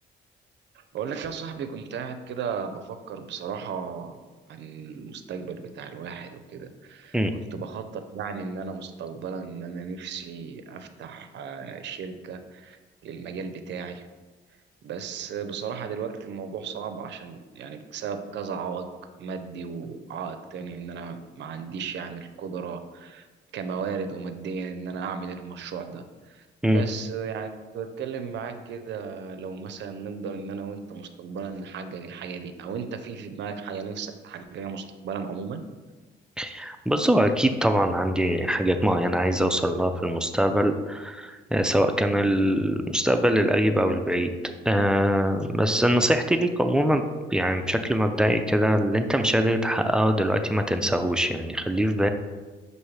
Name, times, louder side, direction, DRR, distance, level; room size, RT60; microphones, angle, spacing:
voice 1, 0.7-4.2 4.5-14.0 14.8-18.9 19.2-23.3 23.5-35.6, right 6 dB, 65° right, 8 dB, 0.5 m, -35 dB
voice 2, 36.4-44.3 44.6-52.1, equal, 5° right, 6 dB, 0.3 m, -23 dB
5.6 x 2.7 x 3.2 m, 1.3 s
cardioid pair, 90°, 20 cm